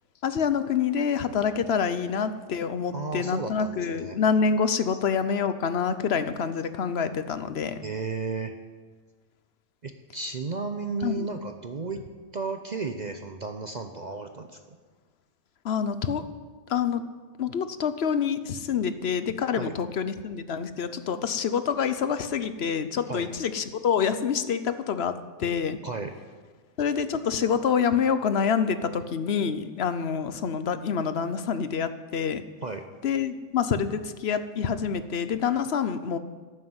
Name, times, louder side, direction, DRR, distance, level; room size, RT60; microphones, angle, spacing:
voice 1, 0.2-7.8 11.0-11.3 15.6-16.3 16.7-17.0 17.4-25.1 25.4-25.8 26.8-32.4 33.0-36.2, left 6 dB, 55° left, 11 dB, 0.9 m, -27 dB
voice 2, 2.9-4.2 4.9-5.0 7.8-8.5 9.8-12.0 12.3-14.8 19.6-19.7 23.1-23.3 25.8-26.2 32.6-32.8, right 4 dB, 40° right, 6 dB, 0.6 m, -34 dB
11.5 x 9.5 x 7.9 m, 1.4 s
omnidirectional pair, 1.5 m